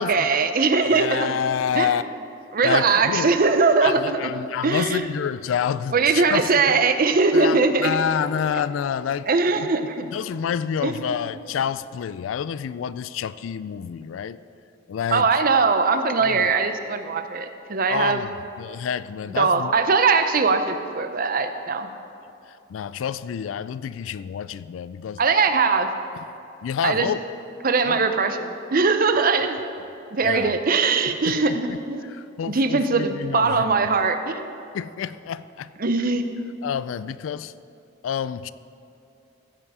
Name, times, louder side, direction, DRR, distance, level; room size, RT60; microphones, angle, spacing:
voice 1, 0.0-1.3 1.7-1.9 2.5-4.2 4.6-5.0 5.9-8.0 9.3-9.9 10.8-11.2 15.1-18.2 19.4-21.9 25.2-25.9 26.8-27.1 27.6-29.6 30.1-32.0 32.5-34.5 35.8-36.2, right 4 dB, 50° right, 9 dB, 0.7 m, -21 dB
voice 2, 0.8-2.1 2.6-3.3 3.8-6.8 7.3-9.3 9.6-9.7 10.1-14.4 14.9-15.3 16.2-16.5 17.9-19.7 22.5-25.2 26.6-27.2 27.8-28.1 30.2-30.5 31.3-31.4 31.7-33.7 34.7-35.7 36.6-37.5 38.0-38.5, left 8 dB, 90° left, 16 dB, 0.3 m, -28 dB
15.5 x 7.1 x 4.9 m, 2.7 s
head